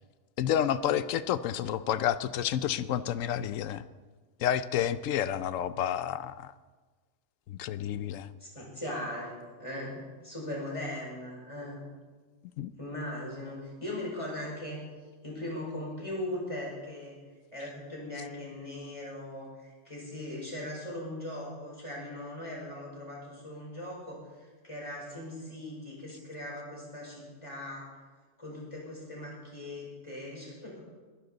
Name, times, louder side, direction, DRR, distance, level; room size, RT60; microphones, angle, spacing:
voice 1, 0.4-3.8 4.4-6.5 7.5-8.3 12.6-12.7, left 10 dB, 85° left, 14 dB, 1.0 m, -30 dB
voice 2, 8.4-9.3 9.6-11.8 12.8-14.8 15.2-17.1 17.5-24.2 24.6-27.9 28.4-30.8, left 1 dB, 25° left, -4 dB, 5.3 m, -39 dB
21.5 x 12.0 x 3.9 m, 1.4 s
omnidirectional pair, 1.3 m